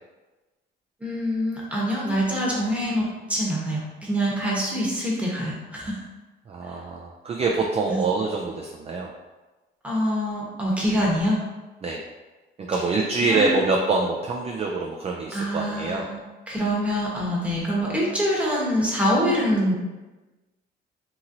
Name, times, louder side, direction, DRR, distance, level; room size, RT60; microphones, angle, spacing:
voice 1, 1.0-6.0 7.9-8.0 9.8-11.4 13.3-13.5 15.3-16.2 16.5-19.7, equal, 5° right, -5 dB, 1.0 m, -25 dB
voice 2, 6.5-9.1 11.8-12.0 12.6-16.1, right 3 dB, 30° right, 0 dB, 0.3 m, -25 dB
2.9 x 2.8 x 2.5 m, 1.2 s
cardioid pair, 90°, 20 cm